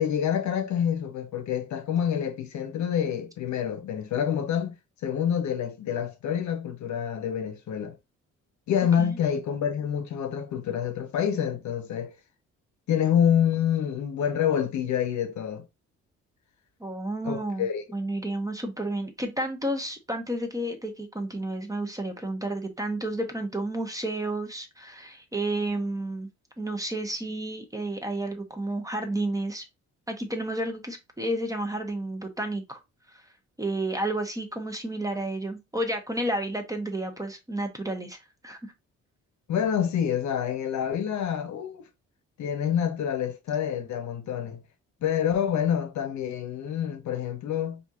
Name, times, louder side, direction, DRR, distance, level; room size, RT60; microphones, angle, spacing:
voice 1, 0.0-4.8 5.0-8.0 8.7-12.1 12.9-15.7 17.2-17.8 39.5-41.8 42.4-44.6 45.0-47.8, left 9 dB, 70° left, 0.7 m, -27 dB
voice 2, 16.8-17.7 17.9-26.3 26.6-29.6 30.1-32.8 33.1-33.2 33.6-38.2 38.4-38.7, right 1 dB, 10° right, 0.8 m, -31 dB
4.2 x 2.8 x 2.4 m
cardioid pair, 90°, 30 cm